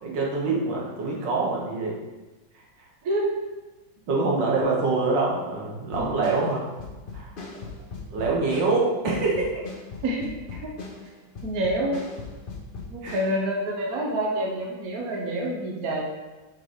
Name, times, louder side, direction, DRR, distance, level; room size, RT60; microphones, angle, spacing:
voice 1, 0.0-2.0 4.1-6.6 7.1-7.3 8.1-9.5 13.0-13.2, right 3 dB, 70° right, -3 dB, 1.9 m, -25 dB
voice 2, 3.0-3.3 6.0-6.1 10.0-10.3 10.6-10.7 11.4-12.0 12.9-16.1, right 1 dB, 55° right, -2 dB, 1.3 m, -27 dB
sound 1, 5.8-13.4, left 4 dB, 55° left, 0.6 m, -39 dB
5.4 x 5.2 x 4.7 m, 1.2 s
omnidirectional pair, 2.1 m